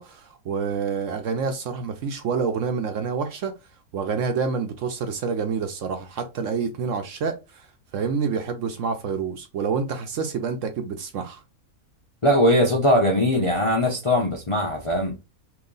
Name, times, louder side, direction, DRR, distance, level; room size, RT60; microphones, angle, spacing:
voice 1, 0.0-3.5 3.9-7.7 7.9-11.4, right 5 dB, 65° right, 0.8 m, -28 dB
voice 2, 12.2-15.1, equal, 45° left, 0.4 m, -20 dB
3.0 x 2.9 x 3.8 m
omnidirectional pair, 1.6 m